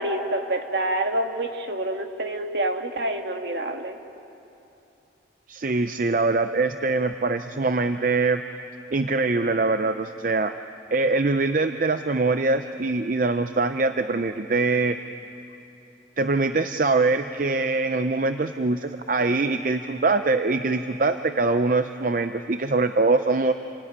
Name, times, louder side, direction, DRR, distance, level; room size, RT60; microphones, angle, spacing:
voice 1, 0.0-4.0, right 1 dB, 60° right, 4 dB, 1.8 m, -27 dB
voice 2, 5.5-8.4 8.9-10.5 10.9-15.0 16.2-23.5, right 3 dB, 45° right, 9 dB, 0.6 m, -23 dB
28.5 x 18.5 x 9.6 m, 2.8 s
head